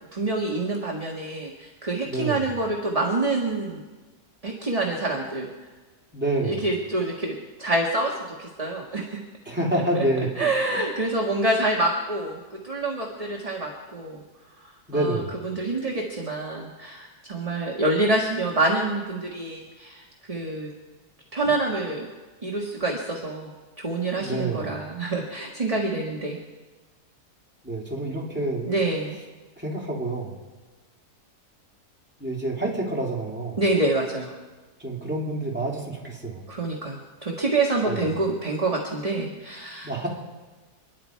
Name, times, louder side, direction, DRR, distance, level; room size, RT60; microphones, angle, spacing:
voice 1, 0.1-3.8 4.4-5.5 6.4-8.1 8.4-9.2 9.9-10.0 10.4-14.2 14.9-20.7 21.3-22.1 22.4-26.4 28.7-29.2 33.6-34.3 36.5-40.1, right 2 dB, 25° right, -1 dB, 1.7 m, -27 dB
voice 2, 2.0-2.4 6.1-6.6 9.4-10.5 14.9-15.5 24.2-24.8 27.6-28.7 29.6-30.3 32.2-33.6 34.8-36.4 37.8-38.0 39.8-40.1, right 1 dB, 5° right, -3 dB, 3.3 m, -28 dB
28.0 x 11.0 x 4.7 m, 1.3 s
omnidirectional pair, 1.6 m